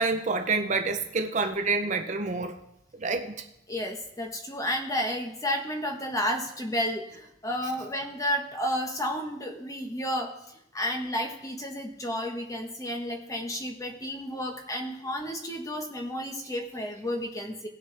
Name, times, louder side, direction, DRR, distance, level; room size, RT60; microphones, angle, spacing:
voice 1, 0.0-2.6 3.0-3.4, right 3 dB, 40° right, 6 dB, 0.6 m, -28 dB
voice 2, 3.7-17.7, equal, 15° left, 3 dB, 1.2 m, -32 dB
18.0 x 6.5 x 3.4 m, 0.82 s
head